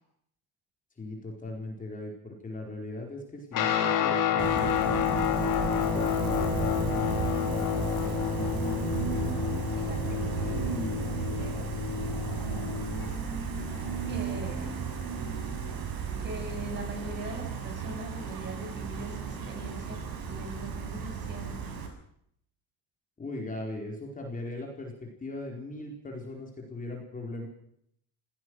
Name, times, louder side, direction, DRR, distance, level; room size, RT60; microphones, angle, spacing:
voice 1, 1.0-4.7 5.8-7.1 23.2-27.5, left 2 dB, 20° left, 1 dB, 4.6 m, -39 dB
Guitar, 3.5-13.2, left 8 dB, 45° left, 3.7 m, -29 dB
sound 1, 4.4-14.7, left 8 dB, 85° left, 3.6 m, -45 dB
Gull seagull, 4.4-21.9, right 6 dB, 55° right, 6.4 m, -34 dB
voice 2, 9.8-11.7 14.1-14.7 16.2-20.0 20.3-21.6, right 1 dB, 25° right, 3 dB, 7.2 m, -42 dB
25.0 x 16.5 x 6.4 m, 0.72 s
cardioid pair, 130°, 44 cm